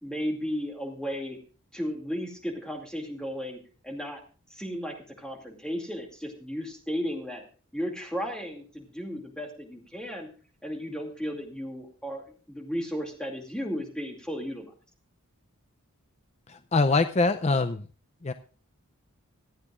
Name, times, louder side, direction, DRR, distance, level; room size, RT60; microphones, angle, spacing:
voice 1, 0.0-1.4 1.7-4.2 4.5-7.4 7.7-10.3 10.6-14.7, equal, 5° left, 1 dB, 2.4 m, -34 dB
voice 2, 16.5-17.8 18.2-18.3, left 3 dB, 30° left, 10 dB, 0.5 m, -24 dB
26.0 x 9.0 x 2.5 m, 0.38 s
head